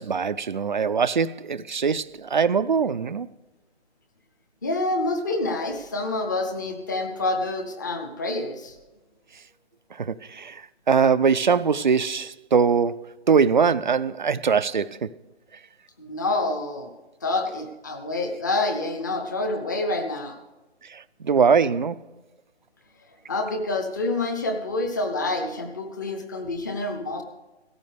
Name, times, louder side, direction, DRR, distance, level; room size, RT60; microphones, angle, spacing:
voice 1, 0.0-3.3 10.0-10.6 10.9-15.1 20.9-22.0, right 6 dB, 45° right, 0.4 m, -22 dB
voice 2, 4.6-8.8 16.0-16.9 17.2-20.4 23.3-27.2, left 2 dB, 15° left, 0.7 m, -27 dB
16.5 x 14.0 x 3.4 m
hypercardioid pair, 160°, 33 cm